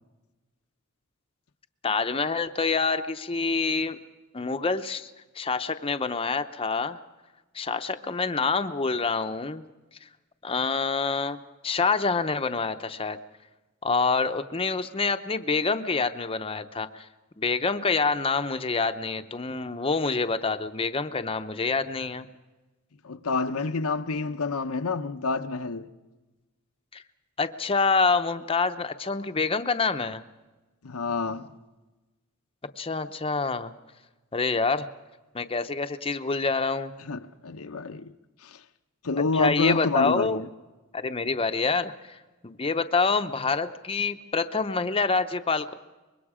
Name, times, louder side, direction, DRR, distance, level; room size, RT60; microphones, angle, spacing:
voice 1, 1.8-4.0 4.3-5.1 5.4-7.0 7.5-9.6 10.4-13.2 13.8-17.1 17.4-22.3 26.9-27.0 27.4-30.2 32.8-33.7 34.3-34.9 35.3-36.9 39.3-40.4 40.9-45.7, left 4 dB, 25° left, 0.7 m, -27 dB
voice 2, 23.0-25.9 30.8-31.5 37.0-38.1 38.4-38.6 39.0-40.5, left 3 dB, 90° left, 0.8 m, -28 dB
25.0 x 22.0 x 4.9 m
head